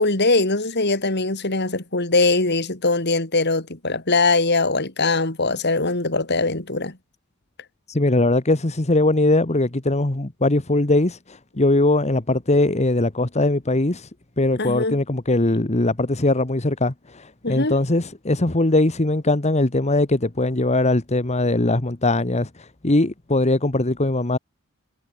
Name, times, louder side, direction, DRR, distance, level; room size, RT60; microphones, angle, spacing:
voice 1, 0.0-7.0 14.6-15.0 17.4-17.7, left 3 dB, 55° left, 4.0 m, -21 dB
voice 2, 7.9-14.1 14.4-24.4, left 2 dB, 30° left, 1.4 m, -21 dB
head